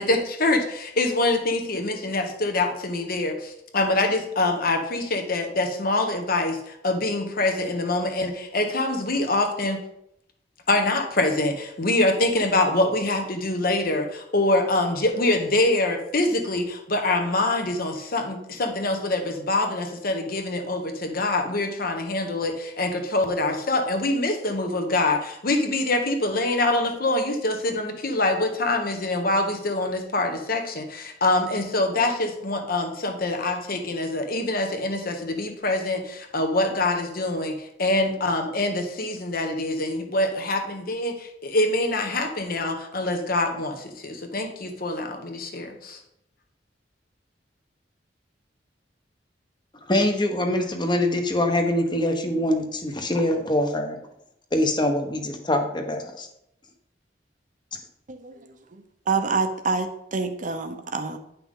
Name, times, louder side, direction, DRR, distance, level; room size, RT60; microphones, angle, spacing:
voice 1, 0.0-9.8 10.7-46.0, left 2 dB, 55° left, 5 dB, 1.3 m, -25 dB
voice 2, 49.9-54.0 54.5-56.3, left 1 dB, 25° left, 5 dB, 1.1 m, -24 dB
voice 3, 58.1-58.5 59.1-61.2, right 4 dB, 45° right, 7 dB, 0.8 m, -27 dB
9.6 x 5.8 x 3.7 m, 0.78 s
head